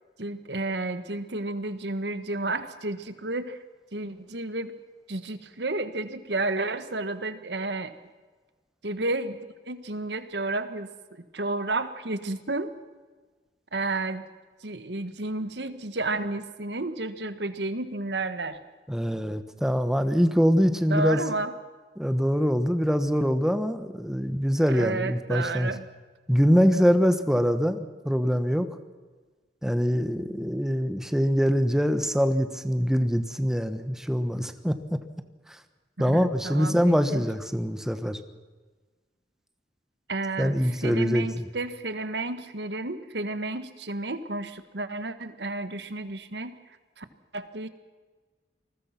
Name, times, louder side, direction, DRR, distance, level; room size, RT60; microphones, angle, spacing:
voice 1, 0.2-3.6 3.9-4.8 5.1-7.9 8.8-9.4 9.7-10.9 11.3-12.7 13.7-14.2 14.6-18.6 20.9-21.5 24.7-25.8 36.0-37.2 40.1-46.6 47.0-47.1 47.3-47.7, right 2 dB, 75° right, 11 dB, 1.6 m, -31 dB
voice 2, 18.9-21.2 22.0-25.7 26.3-28.7 29.6-35.0 35.5-35.6 36.0-38.2 40.4-41.5, equal, 5° right, 9 dB, 1.2 m, -24 dB
28.5 x 20.5 x 6.0 m, 1.3 s
head